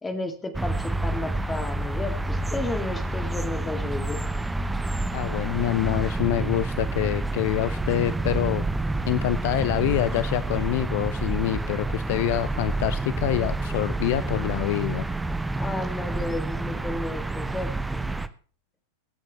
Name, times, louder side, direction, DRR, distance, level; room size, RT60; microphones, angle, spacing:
voice 1, 0.0-4.2 15.6-18.0, left 2 dB, 15° left, 6 dB, 2.2 m, -33 dB
sound 1, 0.5-18.3, right 2 dB, 5° right, 0.7 m, -28 dB
voice 2, 5.1-8.6 9.1-15.1, left 14 dB, 50° left, 15 dB, 0.5 m, -26 dB
24.0 x 8.9 x 3.1 m, 0.43 s
figure-of-eight pair, 90°, 0 cm